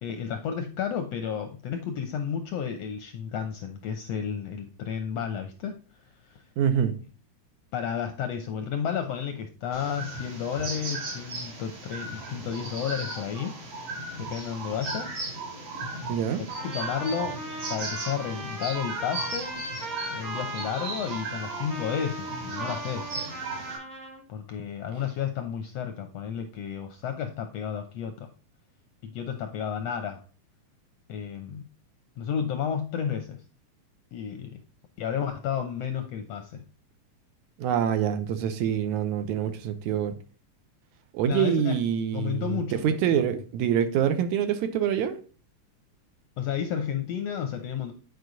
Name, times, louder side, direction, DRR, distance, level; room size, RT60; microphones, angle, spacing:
voice 1, 0.0-6.5 7.7-13.6 14.2-15.2 16.6-17.4 17.7-19.7 20.1-23.1 24.3-28.3 29.0-30.2 31.1-31.7 32.2-33.4 34.1-34.6 35.0-36.6 41.3-41.8 42.1-43.2 46.4-47.9, left 8 dB, 75° left, 1.5 m, -32 dB
voice 2, 6.6-6.9 16.1-16.4 37.6-40.1 41.1-45.2, right 9 dB, 75° right, 2.0 m, -26 dB
sound 1, 9.7-23.8, right 2 dB, 50° right, 3.5 m, -36 dB
Trumpet, 16.5-24.2, right 2 dB, 35° right, 1.2 m, -38 dB
9.4 x 4.9 x 3.9 m
omnidirectional pair, 3.7 m